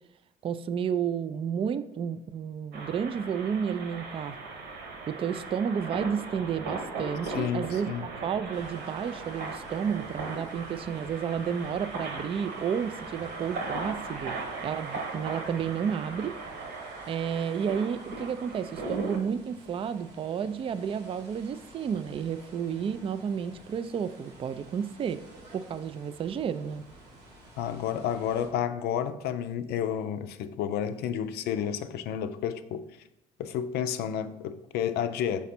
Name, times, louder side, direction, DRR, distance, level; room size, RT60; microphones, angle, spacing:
voice 1, 0.4-4.4 5.1-16.4 17.1-25.3 25.5-26.8, right 7 dB, 30° right, 12 dB, 0.4 m, -31 dB
sound 1, 2.7-19.2, right 3 dB, 60° right, 1.2 m, -38 dB
voice 2, 7.3-8.1 27.6-32.9 33.4-35.5, left 9 dB, 55° left, 10 dB, 0.5 m, -31 dB
sound 2, 8.5-28.5, right 1 dB, 85° right, 1.6 m, -53 dB
5.9 x 4.0 x 4.3 m, 0.84 s
hypercardioid pair, 55°, 20 cm